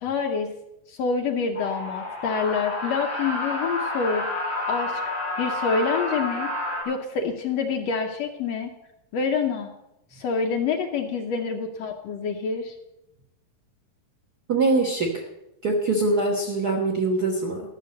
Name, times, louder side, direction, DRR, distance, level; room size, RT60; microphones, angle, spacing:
voice 1, 0.0-0.5 0.9-4.2 4.7-5.0 5.4-6.5 6.8-8.7 9.1-9.7 10.1-12.7, left 5 dB, 70° left, 3 dB, 1.6 m, -27 dB
sound 1, 1.5-6.8, left 2 dB, 5° left, 3.0 m, -29 dB
voice 2, 14.5-15.2 15.6-17.6, right 3 dB, 80° right, 1 dB, 0.8 m, -23 dB
13.0 x 6.8 x 7.8 m, 0.88 s
omnidirectional pair, 3.9 m